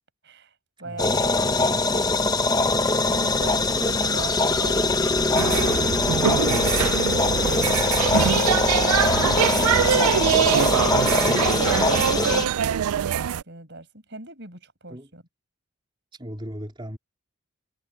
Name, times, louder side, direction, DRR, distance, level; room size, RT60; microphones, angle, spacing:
voice 1, 0.2-0.5 0.8-2.3 3.0-5.7 6.4-7.5 12.4-15.2, right 2 dB, 50° right, 7.0 m, -40 dB
voice 2, 0.8-1.3 14.9-15.1 16.1-17.0, equal, 20° right, 3.9 m, -37 dB
sound 1, 1.0-12.5, left 3 dB, 15° left, 0.8 m, -22 dB
sound 2, 3.3-12.2, left 1 dB, 85° left, 3.6 m, -38 dB
sound 3, 5.4-13.4, right 9 dB, 85° right, 0.4 m, -23 dB
head